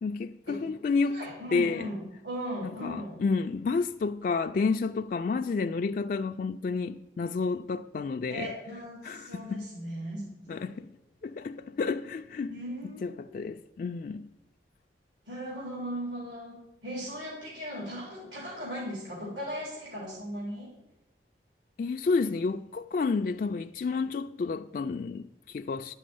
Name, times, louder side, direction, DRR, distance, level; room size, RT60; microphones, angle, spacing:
voice 1, 0.0-1.2 1.5-1.9 2.6-8.5 9.0-9.7 10.5-10.9 11.2-12.6 13.0-14.3 21.8-25.9, left 4 dB, 50° left, 0.3 m, -30 dB
voice 2, 1.1-3.2 8.3-10.6 12.5-13.4 15.2-16.6 16.8-20.7, equal, 80° right, 3.3 m, -38 dB
10.5 x 6.3 x 8.4 m
head